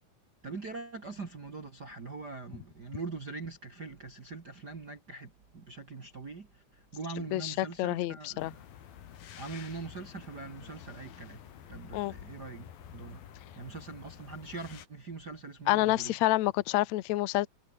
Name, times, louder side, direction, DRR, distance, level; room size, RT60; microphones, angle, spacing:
voice 1, 0.4-8.7 9.3-13.2 13.6-16.1, right 4 dB, 30° right, 2.2 m, -42 dB
voice 2, 7.3-8.5 11.9-12.1 15.7-17.5, left 17 dB, 85° left, 1.5 m, -28 dB
sound 1, 8.4-14.9, left 10 dB, 70° left, 3.9 m, -49 dB
omnidirectional pair, 4.4 m